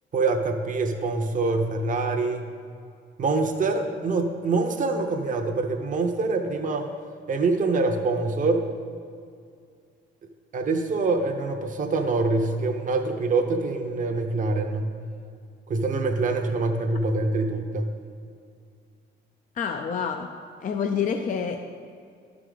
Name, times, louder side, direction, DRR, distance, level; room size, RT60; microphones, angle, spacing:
voice 1, 0.1-2.5 3.2-6.9 7.3-8.6 10.5-14.9 15.7-17.9, right 3 dB, 40° right, 4 dB, 0.8 m, -25 dB
voice 2, 19.6-20.3 20.6-21.7, left 6 dB, 40° left, 5 dB, 0.5 m, -27 dB
12.0 x 4.8 x 3.9 m, 2.3 s
cardioid pair, 90°, 20 cm